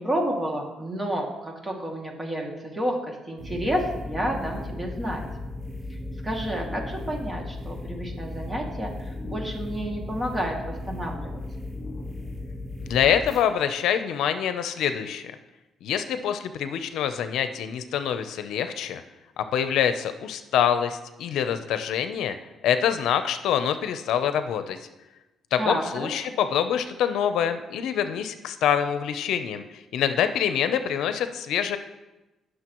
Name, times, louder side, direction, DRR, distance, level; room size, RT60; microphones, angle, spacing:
voice 1, 0.0-5.2 6.2-11.4 25.6-26.1, equal, 20° right, 0 dB, 2.3 m, -30 dB
sound 1, 3.4-13.4, left 2 dB, ahead, 3.0 m, -36 dB
voice 2, 12.8-15.3 15.8-19.0 19.4-22.4 22.6-24.8 25.5-29.6 29.9-31.8, left 9 dB, 80° left, 10 dB, 0.6 m, -25 dB
19.0 x 6.5 x 3.0 m, 1.1 s
cardioid pair, 90°, 0 cm